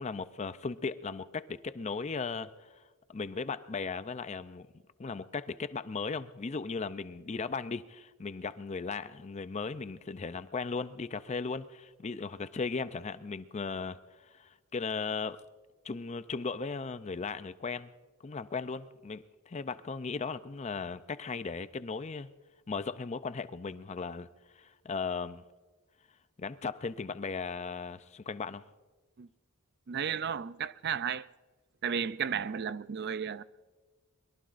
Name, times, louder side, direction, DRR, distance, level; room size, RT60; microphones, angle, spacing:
voice 1, 0.0-2.5 3.1-4.7 5.0-14.0 14.3-15.4 15.8-17.9 18.2-22.3 22.7-24.3 24.6-25.4 26.4-28.7 32.3-32.4, left 4 dB, 30° left, 0.5 m, -37 dB
voice 2, 29.9-31.3 31.8-33.4, right 7 dB, 50° right, 0.4 m, -33 dB
23.5 x 22.5 x 2.5 m
head